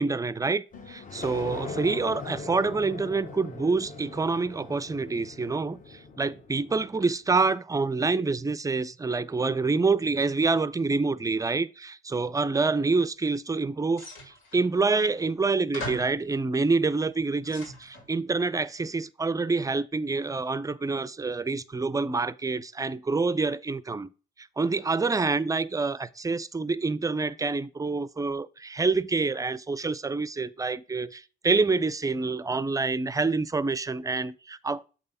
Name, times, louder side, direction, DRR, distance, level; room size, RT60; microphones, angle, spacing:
voice 1, 0.0-5.8 6.2-14.1 14.5-24.1 24.4-34.8, right 3 dB, 15° right, 0.4 m, -27 dB
sound 1, 0.7-7.1, left 3 dB, 40° left, 1.1 m, -40 dB
sound 2, 13.9-14.7 15.4-15.5 15.7-16.2 16.9-18.1, left 1 dB, 85° left, 3.4 m, -40 dB
7.4 x 3.4 x 5.4 m
cardioid pair, 90°, 20 cm